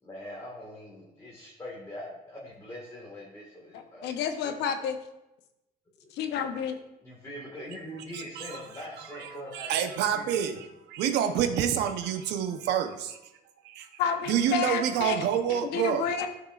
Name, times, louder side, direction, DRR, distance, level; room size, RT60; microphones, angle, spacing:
voice 1, 0.0-4.5 6.0-6.4 7.0-9.7 10.1-10.3, left 1 dB, 20° left, -4 dB, 1.8 m, -43 dB
voice 2, 3.7-5.0 6.1-6.8 14.0-16.3, left 6 dB, 85° left, 7 dB, 0.9 m, -30 dB
voice 3, 8.1-13.2 13.6-13.9 14.3-16.0, right 9 dB, 85° right, 6 dB, 0.9 m, -28 dB
13.5 x 6.0 x 2.5 m, 0.91 s
cardioid pair, 110°, 17 cm